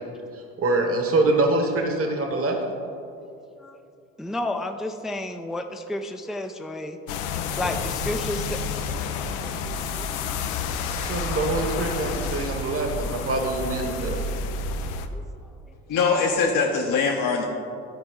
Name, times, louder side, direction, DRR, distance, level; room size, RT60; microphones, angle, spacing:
voice 1, 0.3-2.6 10.8-14.2, right 2 dB, 35° right, 3 dB, 1.2 m, -25 dB
voice 2, 4.2-7.0 7.6-8.6 9.4-10.1 15.1-15.2, left 1 dB, ahead, 5 dB, 0.4 m, -31 dB
sound 1, 7.1-15.1, left 4 dB, 80° left, 0.6 m, -30 dB
voice 3, 15.9-17.4, left 5 dB, 50° left, 0 dB, 0.9 m, -22 dB
12.5 x 4.6 x 3.8 m, 2.6 s
hypercardioid pair, 60°, 42 cm